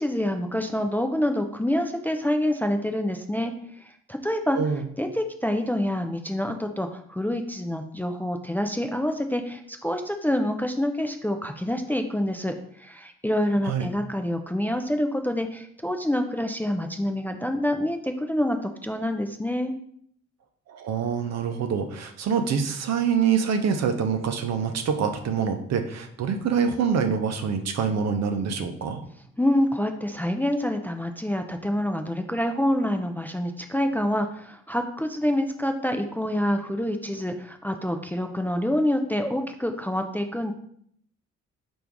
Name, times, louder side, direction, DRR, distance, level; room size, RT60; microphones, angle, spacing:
voice 1, 0.0-4.6 5.0-19.7 29.4-40.5, left 1 dB, 5° left, 5 dB, 0.4 m, -27 dB
voice 2, 4.5-4.8 13.6-13.9 20.7-29.0, right 6 dB, 60° right, 6 dB, 0.6 m, -25 dB
4.4 x 2.6 x 3.4 m, 0.65 s
hypercardioid pair, 45°, 31 cm